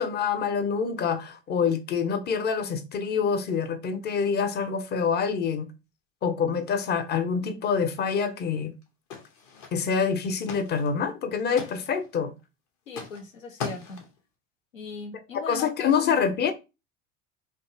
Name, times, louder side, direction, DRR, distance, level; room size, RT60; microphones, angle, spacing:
voice 1, 0.0-5.7 6.2-8.7 9.7-12.3 15.3-16.5, left 6 dB, 25° left, 0.5 m, -26 dB
sound 1, 8.8-8.9 9.1-10.0 10.3-10.9 11.2-12.1 12.9-13.2 13.6-14.2, left 5 dB, 50° left, 1.0 m, -39 dB
voice 2, 12.9-14.0 14.7-15.9, left 4 dB, 80° left, 0.7 m, -38 dB
3.2 x 2.4 x 2.8 m
figure-of-eight pair, 70°, 39 cm